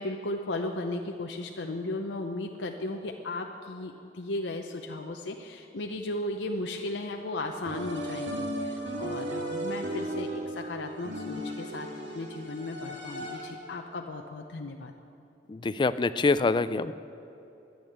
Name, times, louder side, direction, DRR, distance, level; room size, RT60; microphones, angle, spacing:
voice 1, 0.0-11.9 12.1-14.9, left 2 dB, 90° left, 3 dB, 0.7 m, -35 dB
sound 1, 7.6-13.7, right 1 dB, 80° right, 2.2 m, -35 dB
voice 2, 15.5-16.9, left 3 dB, 25° left, 14 dB, 0.3 m, -25 dB
12.0 x 10.5 x 7.9 m, 2.8 s
head